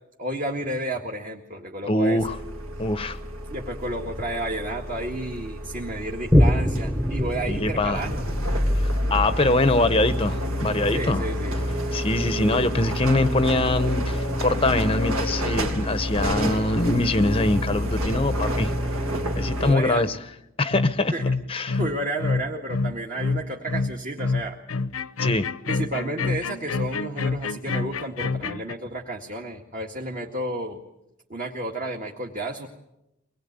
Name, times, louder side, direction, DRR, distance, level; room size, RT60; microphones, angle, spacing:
voice 1, 0.2-2.3 3.5-8.3 10.9-11.6 19.6-20.2 21.1-21.3 21.8-24.6 25.6-30.8 31.3-32.7, right 1 dB, 35° right, 1 dB, 1.9 m, -31 dB
voice 2, 1.9-2.4 2.8-3.2 7.5-8.0 8.7-11.3 11.9-18.7 19.4-20.2 20.6-21.1 21.5-21.8 25.2-25.5, left 2 dB, 25° left, 12 dB, 0.9 m, -23 dB
sound 1, 2.2-19.7, equal, 75° right, 3.3 m, -28 dB
Boom, 6.3-13.2 13.7-13.8, left 1 dB, 5° right, 1.0 m, -26 dB
sound 2, 20.7-28.7, left 4 dB, 75° left, 0.9 m, -27 dB
24.0 x 20.5 x 9.5 m, 0.89 s
head